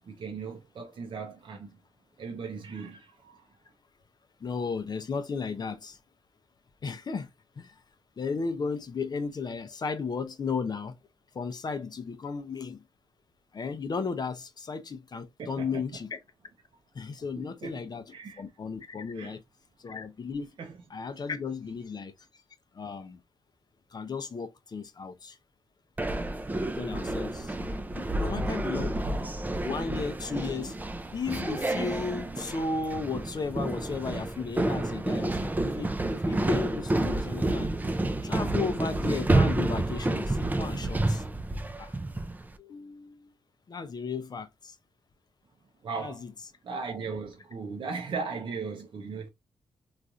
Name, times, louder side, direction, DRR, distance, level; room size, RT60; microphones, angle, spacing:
voice 1, 0.0-1.8 2.2-3.5 15.4-15.8 17.4-17.8 18.1-18.4 19.1-19.4 20.6-20.8 45.8-46.2 46.6-49.3, right 5 dB, 60° right, 0.7 m, -37 dB
voice 2, 4.4-6.0 6.8-7.3 7.6-7.7 8.2-10.9 11.3-12.8 13.5-16.2 17.0-19.4 19.8-20.5 20.9-22.1 22.8-23.2 23.9-25.4 26.8-27.5 27.9-29.3 29.6-30.7 31.1-37.7 38.2-41.2 41.8-41.9 42.6-43.3 43.7-44.5 46.0-46.3, left 4 dB, 45° left, 0.6 m, -34 dB
sound 1, 26.0-42.5, right 2 dB, 15° right, 0.5 m, -29 dB
3.1 x 2.4 x 2.5 m
cardioid pair, 80°, 10 cm